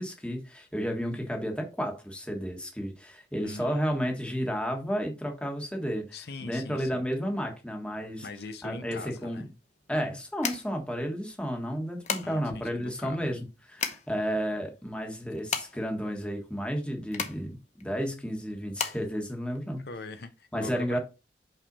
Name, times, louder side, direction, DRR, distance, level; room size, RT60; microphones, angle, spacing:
voice 1, 0.0-8.3 8.6-9.4 9.9-19.9 20.5-21.0, equal, 5° left, 1.4 m, -32 dB
voice 2, 3.4-3.8 6.1-7.1 8.2-9.5 12.2-13.4 19.8-21.0, left 3 dB, 60° left, 0.6 m, -42 dB
sound 1, 9.0-20.1, left 6 dB, 40° left, 0.9 m, -38 dB
5.7 x 5.3 x 4.1 m
head